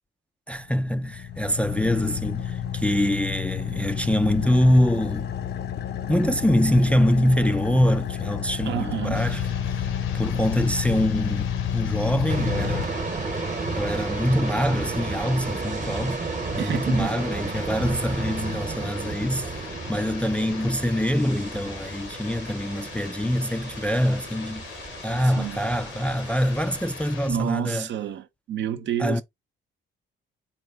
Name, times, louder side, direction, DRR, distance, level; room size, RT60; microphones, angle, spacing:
voice 1, 0.5-5.3 6.1-9.9 10.1-12.9 13.8-16.2 16.6-24.6 25.0-27.9 29.0-29.2, equal, 5° left, 0.3 m, -24 dB
Car / Idling, 0.6-13.5, left 9 dB, 60° left, 0.6 m, -30 dB
voice 2, 8.7-9.2 16.6-17.2 25.4-25.6 27.3-29.2, right 9 dB, 65° right, 0.7 m, -29 dB
sound 1, 9.1-27.3, left 8 dB, 80° left, 0.9 m, -42 dB
sound 2, 12.3-27.4, right 3 dB, 40° right, 1.0 m, -33 dB
4.2 x 2.2 x 3.5 m
cardioid pair, 90°, 20 cm